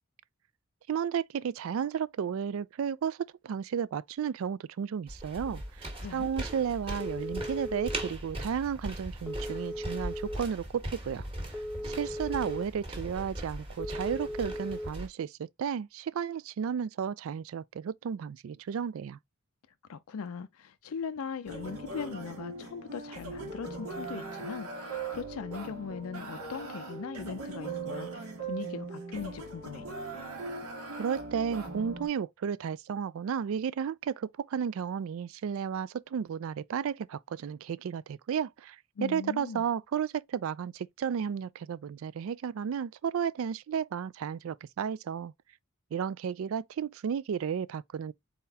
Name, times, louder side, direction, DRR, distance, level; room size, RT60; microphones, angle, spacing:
voice 1, 0.9-5.9 6.1-11.3 11.8-19.2 31.0-45.3 45.9-48.1, right 7 dB, 65° right, 0.3 m, -33 dB
sound 1, 5.1-15.1, right 1 dB, 25° right, 1.5 m, -40 dB
voice 2, 6.0-6.3 19.9-29.9 39.0-39.6, left 6 dB, 75° left, 0.4 m, -40 dB
Telephone, 7.0-8.1 9.3-10.4 11.5-12.6 13.8-14.9, equal, 5° right, 0.7 m, -37 dB
sound 2, 21.5-32.1, right 3 dB, 85° right, 1.8 m, -40 dB
4.2 x 3.9 x 2.7 m
head